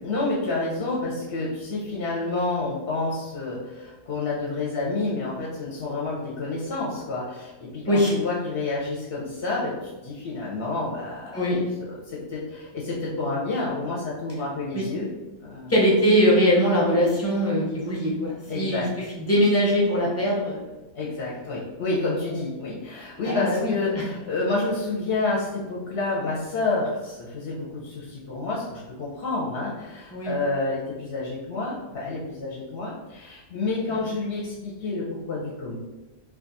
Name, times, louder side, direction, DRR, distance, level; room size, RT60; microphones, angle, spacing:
voice 1, 0.0-15.1 15.4-15.7 18.5-18.9 20.9-35.7, left 3 dB, 55° left, -5 dB, 0.8 m, -29 dB
voice 2, 15.7-18.9 19.2-20.6 23.2-23.7 30.1-30.3, equal, 15° left, -5 dB, 0.5 m, -21 dB
2.5 x 2.4 x 3.9 m, 1.1 s
omnidirectional pair, 1.4 m